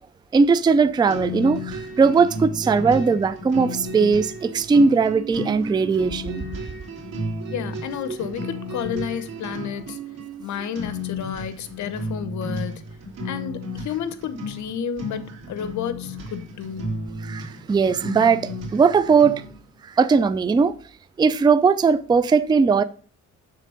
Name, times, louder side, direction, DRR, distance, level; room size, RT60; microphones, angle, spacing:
voice 1, 0.3-6.4 17.2-19.4 19.8-20.7 21.2-22.8, right 5 dB, 15° right, 0.4 m, -19 dB
sound 1, 1.1-19.6, equal, 60° right, 2.6 m, -33 dB
voice 2, 7.5-10.0 10.4-12.8 13.2-17.0, left 8 dB, 70° left, 0.9 m, -31 dB
6.7 x 3.6 x 4.9 m
cardioid pair, 90°, 30 cm